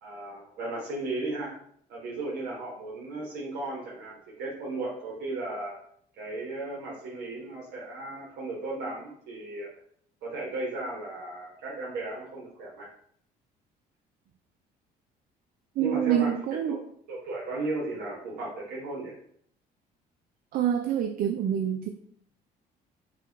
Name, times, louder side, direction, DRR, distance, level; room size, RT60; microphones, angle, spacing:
voice 1, 0.0-1.5 1.9-5.8 6.2-9.7 10.2-12.9 15.8-16.4 16.7-16.8 17.1-19.2, right 2 dB, 75° right, -3 dB, 1.1 m, -35 dB
voice 2, 15.8-16.8 20.5-21.9, right 9 dB, 60° right, 7 dB, 0.4 m, -26 dB
4.8 x 2.2 x 4.6 m, 0.64 s
cardioid pair, 110°, 17 cm